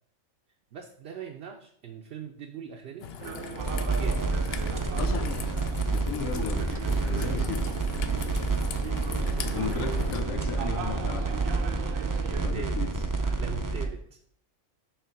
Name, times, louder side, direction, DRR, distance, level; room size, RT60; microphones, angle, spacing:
voice 1, 0.7-3.1 3.9-4.5 9.7-10.7 12.5-14.2, right 7 dB, 60° right, 3 dB, 0.8 m, -42 dB
Raindrop / Trickle dribble, 3.0-10.2, left 7 dB, 60° left, 0.7 m, -40 dB
sound 1, 3.2-12.5, right 6 dB, 80° right, 1.1 m, -39 dB
sound 2, 3.6-13.9, right 3 dB, 30° right, 0.4 m, -29 dB
voice 2, 4.6-5.6 5.9-6.7 7.0-7.7 9.4-11.4 12.4-12.9, left 7 dB, 85° left, 7 dB, 1.1 m, -35 dB
6.9 x 3.2 x 5.7 m, 0.63 s
omnidirectional pair, 1.4 m